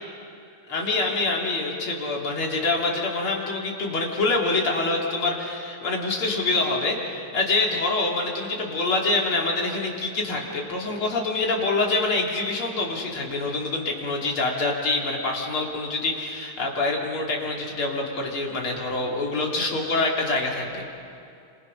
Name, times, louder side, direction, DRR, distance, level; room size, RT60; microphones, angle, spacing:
voice 1, 0.7-20.9, left 3 dB, 70° left, -1 dB, 3.8 m, -26 dB
29.0 x 26.5 x 5.6 m, 2.5 s
omnidirectional pair, 2.4 m